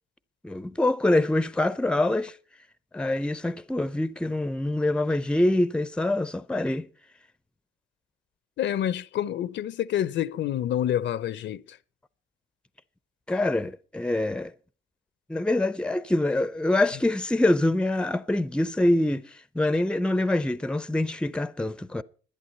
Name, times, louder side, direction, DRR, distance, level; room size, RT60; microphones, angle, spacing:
voice 1, 0.4-2.4 2.9-6.9 13.3-14.5 15.3-22.0, left 1 dB, 5° left, 0.5 m, -25 dB
voice 2, 8.6-11.8, left 11 dB, 65° left, 0.6 m, -28 dB
11.5 x 10.5 x 5.4 m
cardioid pair, 90°, 20 cm